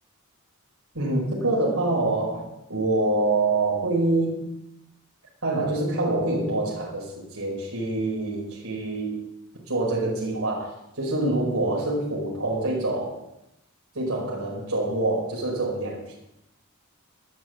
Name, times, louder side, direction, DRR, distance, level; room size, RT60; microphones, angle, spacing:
voice 1, 0.9-4.5 5.4-9.2 9.7-13.2 13.9-16.2, right 2 dB, 85° right, -3 dB, 5.3 m, -26 dB
13.0 x 11.5 x 8.1 m, 0.86 s
head